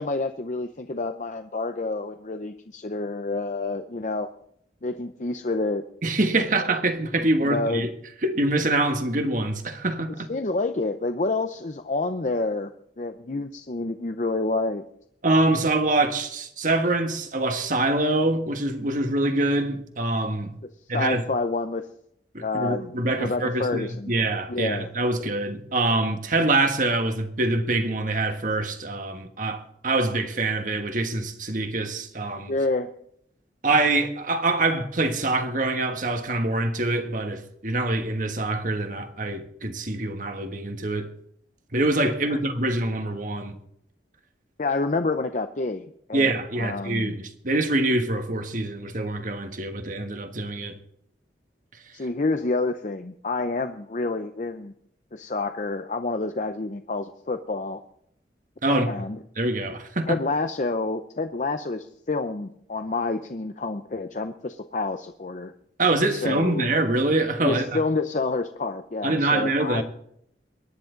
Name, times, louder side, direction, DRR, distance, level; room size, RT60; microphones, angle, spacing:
voice 1, 0.0-4.3 4.8-5.8 6.6-6.7 7.4-7.9 10.3-12.7 13.0-14.8 20.9-21.9 22.4-22.9 23.2-24.1 24.5-24.9 32.5-32.9 42.3-42.4 44.6-46.3 46.6-47.2 51.9-54.7 55.1-57.8 58.7-59.2 60.0-65.5 66.1-66.7 67.4-69.8, left 3 dB, 45° left, 0.7 m, -28 dB
voice 2, 6.0-7.9 8.2-10.3 15.2-20.6 20.9-21.2 22.3-32.5 33.6-41.1 41.7-43.5 46.1-50.8 58.6-58.9 59.4-60.2 65.8-67.8 69.0-69.8, right 2 dB, 45° right, 1.5 m, -25 dB
23.0 x 10.5 x 3.9 m
head